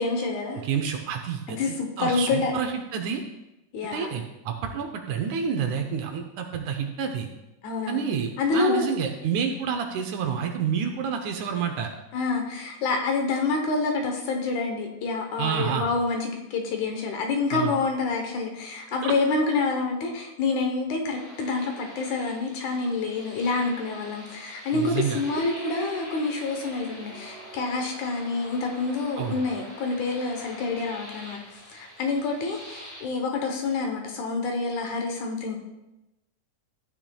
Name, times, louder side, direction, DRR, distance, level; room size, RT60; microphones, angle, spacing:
voice 1, 0.0-0.6 1.5-2.5 3.7-4.2 7.6-8.0 8.4-8.8 12.1-35.6, left 4 dB, 70° left, 2 dB, 2.2 m, -27 dB
voice 2, 0.6-3.2 3.8-7.3 7.9-11.9 15.4-15.9 17.5-17.7 19.0-19.1 24.7-25.2 29.2-29.4, right 7 dB, 75° right, 4 dB, 1.9 m, -29 dB
sound 1, 21.1-33.0, right 1 dB, 5° right, 1.8 m, -44 dB
13.5 x 9.1 x 2.3 m, 0.96 s
omnidirectional pair, 3.8 m